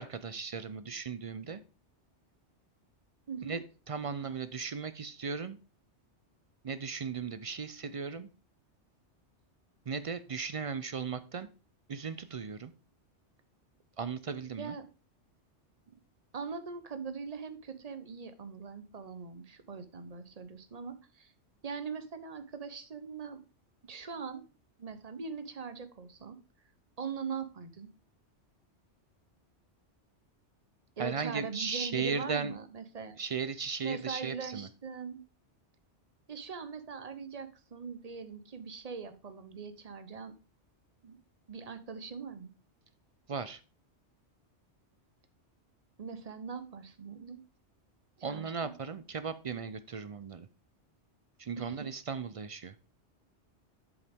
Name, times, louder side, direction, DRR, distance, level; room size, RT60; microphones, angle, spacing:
voice 1, 0.0-1.6 3.5-5.6 6.6-8.3 9.9-11.5 11.9-12.7 14.0-14.8 31.0-32.5 33.2-34.7 43.3-43.6 48.2-50.5 51.4-52.8, right 5 dB, 55° right, 13 dB, 0.4 m, -36 dB
voice 2, 3.3-3.6 14.6-14.8 16.3-21.3 21.6-23.4 23.8-24.4 24.8-26.4 27.0-27.9 31.0-33.2 33.8-35.2 36.3-40.3 41.0-41.2 41.5-42.5 46.0-47.4 48.3-48.7 51.6-51.7, right 5 dB, 35° right, 10 dB, 0.9 m, -41 dB
8.1 x 7.2 x 3.5 m, 0.33 s
omnidirectional pair, 1.2 m